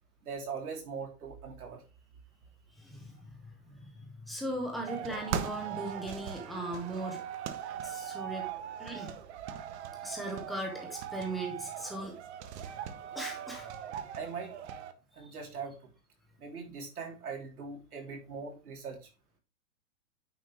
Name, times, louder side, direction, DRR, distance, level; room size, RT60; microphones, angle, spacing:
voice 1, 0.2-1.8 14.1-14.5 15.1-15.9 16.4-19.1, right 5 dB, 80° right, 2 dB, 3.8 m, -41 dB
voice 2, 2.8-7.2 7.8-8.5 8.8-9.2 10.0-12.2 12.6-12.8 13.1-13.7 15.2-15.3, right 1 dB, ahead, 0 dB, 0.3 m, -39 dB
sound 1, 4.9-14.9, right 9 dB, 50° right, 1.2 m, -40 dB
9.3 x 5.5 x 3.4 m, 0.30 s
hypercardioid pair, 130°, 44 cm